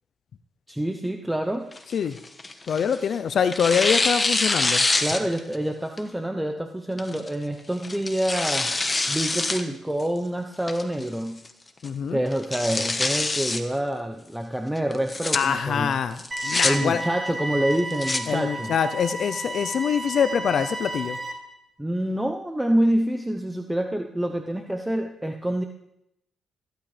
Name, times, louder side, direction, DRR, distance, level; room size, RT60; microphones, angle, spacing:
voice 1, 0.7-1.7 5.0-8.7 9.1-11.4 12.1-15.9 16.6-18.7 21.8-25.6, right 1 dB, 5° right, 4 dB, 0.8 m, -27 dB
Tearing, 1.7-3.0 3.5-5.6 6.0-6.1 7.0-7.3 7.8-9.6 10.0-10.1 10.7-11.1 11.4-11.5 11.8-11.9 12.3-13.6 14.9-15.4 16.2-16.7 17.7-18.2, left 2 dB, 25° left, 1.2 m, -25 dB
voice 2, 2.7-4.8 11.8-12.2 15.3-17.0 18.3-21.2, left 7 dB, 60° left, 12 dB, 0.5 m, -24 dB
sound 1, 16.3-21.3, right 1 dB, 25° right, 2.8 m, -33 dB
15.0 x 11.5 x 3.3 m, 0.82 s
cardioid pair, 90°, 0 cm